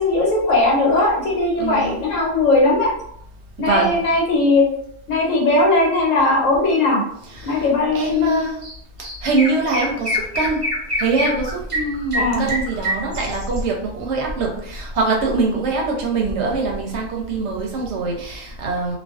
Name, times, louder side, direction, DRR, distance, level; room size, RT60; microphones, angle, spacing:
voice 1, 0.0-2.9 3.6-4.6 5.1-7.0 7.4-8.4 12.2-12.4, left 2 dB, 80° left, -3 dB, 1.2 m, -18 dB
voice 2, 1.6-2.0 3.6-4.0 7.3-7.7 7.9-8.6 9.2-10.6 11.0-19.0, right 3 dB, 70° right, -1 dB, 0.8 m, -23 dB
Chirp tweet, 8.6-8.7 9.0-13.6, left 1 dB, 50° right, 0.4 m, -25 dB
2.4 x 2.3 x 2.3 m, 0.70 s
omnidirectional pair, 1.3 m